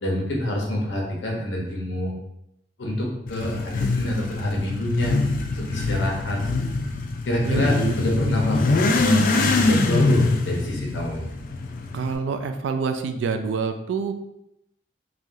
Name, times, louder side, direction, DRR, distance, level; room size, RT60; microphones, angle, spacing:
voice 1, 0.0-2.1 2.8-5.1 5.5-6.4 7.3-11.3, left 1 dB, 80° left, -1 dB, 0.8 m, -26 dB
Motorcycle / Accelerating revving vroom, 3.3-12.2, left 3 dB, 50° left, 0.3 m, -24 dB
voice 2, 7.4-7.9 11.9-14.1, right 5 dB, 80° right, 8 dB, 0.3 m, -27 dB
3.3 x 2.3 x 2.6 m, 0.81 s
head